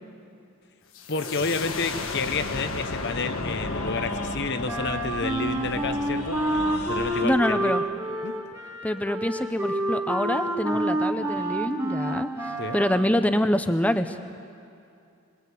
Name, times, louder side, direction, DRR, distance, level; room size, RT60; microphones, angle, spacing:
sound 1, 0.9-6.5, left 3 dB, 70° left, 1.5 m, -34 dB
voice 1, 1.1-6.4 6.9-7.7 8.2-8.4 12.6-12.8, left 4 dB, 50° left, 9 dB, 1.0 m, -30 dB
sound 2, 2.2-7.2, left 1 dB, 85° left, 3.7 m, -36 dB
Wind instrument woodwind instrument, 4.6-13.2, right 1 dB, 15° right, 1.8 m, -28 dB
voice 2, 7.2-7.8 8.8-14.2, equal, 5° left, 9 dB, 0.7 m, -25 dB
25.0 x 21.5 x 8.5 m, 2.5 s
head